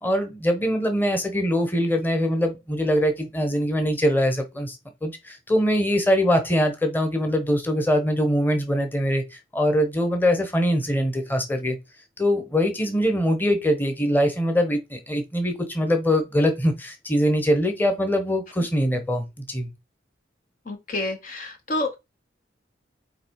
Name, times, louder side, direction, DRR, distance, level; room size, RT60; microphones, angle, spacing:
voice 1, 0.0-11.8 12.2-19.7, equal, 10° left, 1.1 m, -23 dB
voice 2, 20.7-22.0, left 2 dB, 45° left, 0.8 m, -29 dB
8.1 x 3.0 x 4.7 m
head